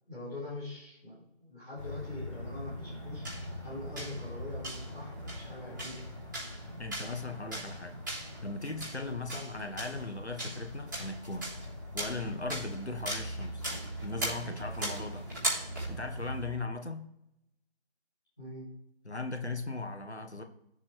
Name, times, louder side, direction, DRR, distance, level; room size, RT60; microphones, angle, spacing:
voice 1, 0.1-3.3 3.6-6.0 9.3-9.4 18.4-18.7, left 2 dB, 5° left, -16 dB, 1.7 m, -43 dB
sound 1, 1.8-16.5, right 1 dB, 20° right, 4.0 m, -39 dB
voice 2, 6.8-8.0 8.4-11.5 11.9-13.6 14.0-15.3 15.9-17.1 19.0-20.4, left 2 dB, 75° left, 6 dB, 1.6 m, -38 dB
16.0 x 7.3 x 3.5 m, 0.81 s
figure-of-eight pair, 170°, 33 cm